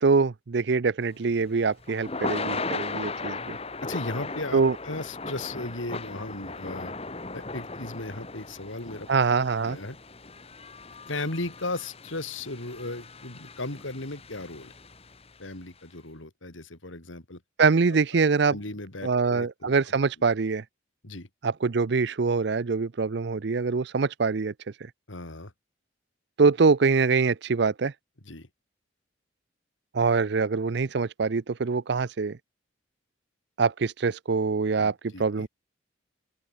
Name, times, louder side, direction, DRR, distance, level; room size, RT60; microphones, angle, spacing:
voice 1, 0.0-3.6 4.5-4.8 9.1-9.8 17.6-18.6 19.0-20.6 21.4-24.5 26.4-27.9 29.9-32.4 33.6-35.5, right 4 dB, 60° right, 0.5 m, -24 dB
Thunder / Rain, 1.1-15.4, left 3 dB, 30° left, 2.3 m, -37 dB
voice 2, 3.8-6.9 7.3-9.1 9.6-10.0 11.1-14.7 15.4-17.4 18.1-19.7 21.0-21.3 25.1-25.5 28.2-28.5 34.8-35.5, left 2 dB, 85° left, 3.6 m, -36 dB
open air
head